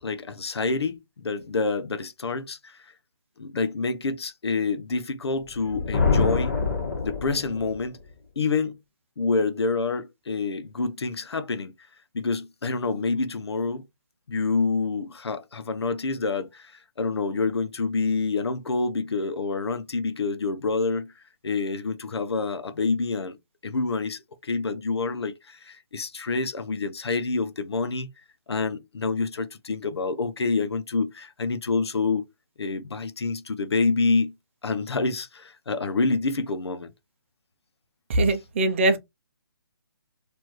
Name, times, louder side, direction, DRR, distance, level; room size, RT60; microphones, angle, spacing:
voice 1, 0.0-2.9 3.4-6.6 7.0-8.0 8.4-8.8 9.2-11.7 12.1-13.8 14.3-21.1 21.4-23.4 23.6-28.1 28.5-32.3 32.6-34.3 34.6-36.9 38.3-38.4, left 4 dB, 85° left, 0.8 m, -27 dB
Thunder, 5.5-7.8, left 4 dB, 40° left, 1.6 m, -25 dB
voice 2, 38.1-39.0, right 2 dB, 30° right, 0.6 m, -21 dB
4.5 x 2.6 x 3.0 m
hypercardioid pair, 165°, 13 cm